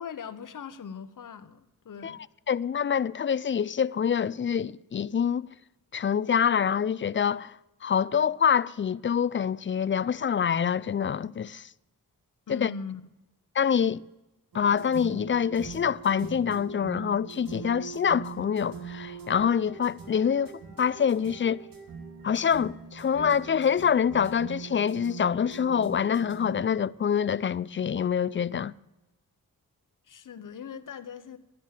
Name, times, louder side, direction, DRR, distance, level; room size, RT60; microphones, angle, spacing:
voice 1, 0.0-2.2 12.5-13.0 30.1-31.4, left 6 dB, 65° left, 0.9 m, -40 dB
voice 2, 2.5-5.5 5.9-7.5 7.8-11.7 12.5-12.7 13.6-14.0 14.5-20.5 20.8-21.6 22.2-28.7, left 7 dB, 35° left, 0.4 m, -26 dB
sound 1, 14.5-26.6, right 6 dB, 85° right, 1.9 m, -42 dB
12.0 x 10.5 x 7.5 m
cardioid pair, 60°, 34 cm